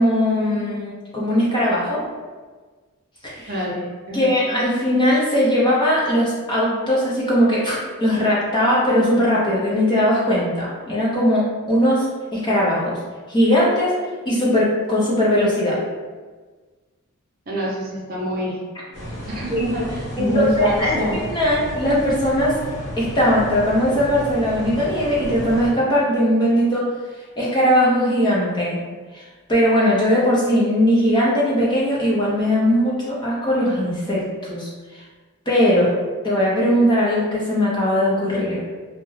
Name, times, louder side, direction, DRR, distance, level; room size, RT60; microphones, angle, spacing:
voice 1, 0.0-2.0 3.2-3.5 4.1-12.1 12.3-13.0 13.3-13.9 14.3-15.8 19.5-19.6 20.2-21.0 21.3-22.6 23.0-26.9 27.4-28.8 29.1-29.2 29.5-34.7 35.5-35.9 36.2-38.6, equal, 20° left, -6 dB, 0.5 m, -19 dB
voice 2, 3.5-4.3 17.5-18.6 19.3-21.2, equal, 40° right, -4 dB, 0.5 m, -26 dB
sound 1, 18.9-25.7, equal, 80° left, 1.1 m, -33 dB
2.2 x 2.1 x 3.1 m, 1.4 s
head